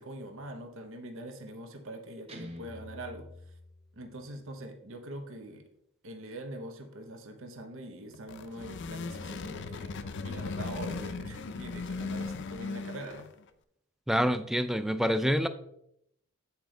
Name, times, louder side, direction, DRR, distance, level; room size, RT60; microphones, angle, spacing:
voice 1, 0.0-3.3 4.0-5.7 6.0-13.3, right 1 dB, 65° right, 6 dB, 0.8 m, -43 dB
Guitar, 2.3-4.3, left 1 dB, 30° right, 1.1 m, -47 dB
sound 1, 8.1-13.4, left 4 dB, 60° left, 0.5 m, -38 dB
voice 2, 14.1-15.5, equal, ahead, 11 dB, 0.3 m, -26 dB
8.2 x 4.4 x 3.8 m, 0.75 s
head